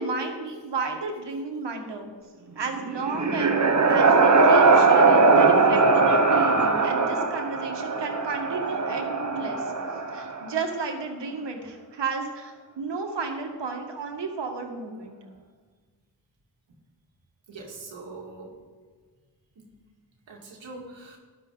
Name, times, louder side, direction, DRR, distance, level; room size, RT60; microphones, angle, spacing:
voice 1, 0.0-2.1 2.6-9.7 10.1-15.2, right 4 dB, 70° right, 3 dB, 2.0 m, -33 dB
sound 1, 2.7-10.6, right 4 dB, 40° right, 1.3 m, -20 dB
voice 2, 17.5-18.5 19.6-19.7 20.3-21.2, right 3 dB, 85° right, -1 dB, 2.1 m, -42 dB
13.0 x 10.5 x 4.0 m, 1.4 s
cardioid pair, 50°, 44 cm